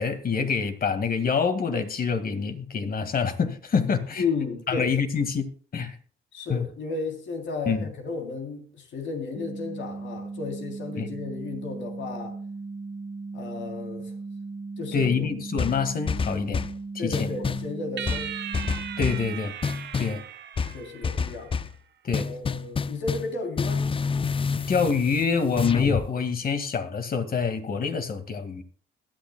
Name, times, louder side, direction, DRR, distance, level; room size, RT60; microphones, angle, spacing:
voice 1, 0.0-4.2 4.7-5.5 5.7-6.0 6.5-6.7 7.7-7.9 11.0-11.1 14.9-16.7 16.9-17.3 19.0-19.5 20.0-20.2 22.0-22.3 24.7-28.6, left 5 dB, 45° left, 1.9 m, -26 dB
voice 2, 4.2-4.9 6.3-12.4 13.3-14.1 14.8-15.3 17.0-18.3 20.7-21.5 22.1-23.9, left 4 dB, 70° left, 3.2 m, -33 dB
sound 1, 9.4-19.4, right 3 dB, 30° right, 1.2 m, -37 dB
sound 2, 15.6-16.8 17.1-17.7 18.1-19.3 19.6-20.2 20.6-21.8 22.1-23.3 23.6-26.1, left 5 dB, 25° left, 0.5 m, -28 dB
sound 3, 18.0-21.5, right 9 dB, 60° right, 1.0 m, -38 dB
21.5 x 11.0 x 2.2 m
cardioid pair, 90°, 20 cm